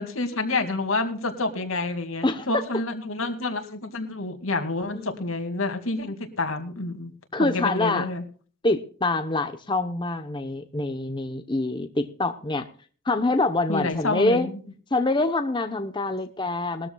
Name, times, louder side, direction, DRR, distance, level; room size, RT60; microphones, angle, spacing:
voice 1, 0.0-7.1 7.4-8.2 13.7-14.6, left 2 dB, 85° left, 6 dB, 2.3 m, -28 dB
voice 2, 4.9-5.2 7.3-8.1 8.6-12.7 13.0-14.5 14.9-16.9, left 2 dB, 25° left, 7 dB, 0.9 m, -25 dB
21.0 x 13.5 x 2.3 m, 0.41 s
head